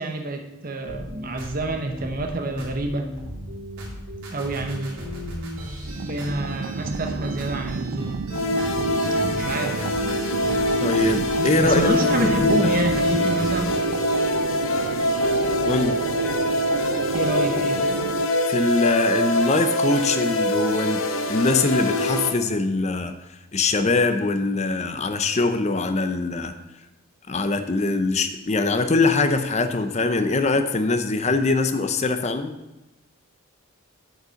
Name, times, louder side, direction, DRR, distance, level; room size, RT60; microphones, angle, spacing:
voice 1, 0.0-3.1 4.3-5.1 6.0-8.3 9.2-9.8 11.6-13.7 17.1-17.8, right 2 dB, 40° right, 5 dB, 0.9 m, -28 dB
sound 1, 0.9-13.7, equal, 90° right, 2.7 m, -35 dB
sound 2, 5.9-18.3, right 5 dB, 70° right, 0.4 m, -31 dB
sound 3, 8.3-22.3, left 1 dB, 70° left, 0.9 m, -24 dB
voice 2, 10.8-11.9 12.2-12.9 15.6-16.0 18.5-23.1 23.5-26.5 27.3-32.5, left 3 dB, 30° left, 8 dB, 0.6 m, -22 dB
7.8 x 5.4 x 6.9 m, 1.0 s
head